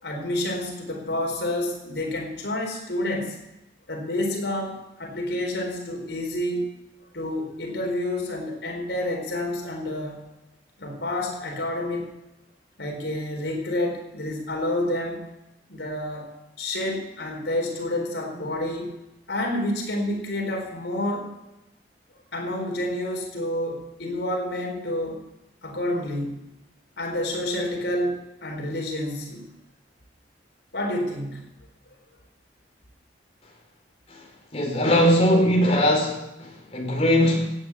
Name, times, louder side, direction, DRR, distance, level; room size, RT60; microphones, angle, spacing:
voice 1, 0.0-3.4 3.9-6.7 7.1-10.2 10.8-12.1 12.8-15.3 15.7-16.3 16.6-19.0 19.3-21.3 22.3-25.2 25.6-26.3 27.0-29.4 30.7-31.5, left 1 dB, 80° left, 2 dB, 4.3 m, -29 dB
voice 2, 34.5-37.5, equal, 35° left, 0 dB, 4.6 m, -20 dB
17.0 x 9.2 x 7.3 m, 0.90 s
head